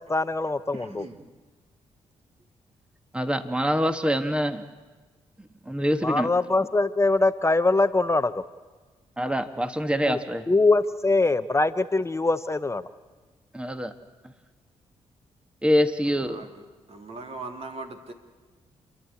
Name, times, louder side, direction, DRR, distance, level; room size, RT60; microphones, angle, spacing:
voice 1, 0.1-1.1 6.0-8.4 10.1-10.2 10.5-12.8, left 2 dB, 20° left, 12 dB, 0.8 m, -23 dB
voice 2, 0.7-1.2 16.1-16.6 16.9-18.1, right 3 dB, 55° right, 4 dB, 2.9 m, -40 dB
voice 3, 3.1-4.6 5.4-6.3 9.2-10.5 13.5-13.9 14.2-14.3 15.6-16.5, equal, 10° right, 9 dB, 1.5 m, -25 dB
29.5 x 11.5 x 8.4 m, 1.3 s
supercardioid pair, 50°, 13 cm